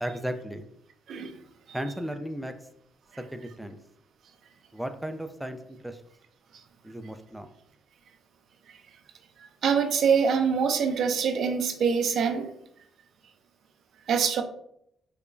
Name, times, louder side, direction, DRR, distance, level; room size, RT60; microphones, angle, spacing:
voice 1, 0.0-0.7 1.7-2.5 3.2-3.8 4.7-6.0 6.8-7.5, equal, 5° right, 7 dB, 0.3 m, -35 dB
voice 2, 9.6-12.5 14.1-14.4, right 6 dB, 65° right, 6 dB, 0.5 m, -24 dB
4.9 x 2.3 x 2.4 m, 0.72 s
cardioid pair, 90°, 0 cm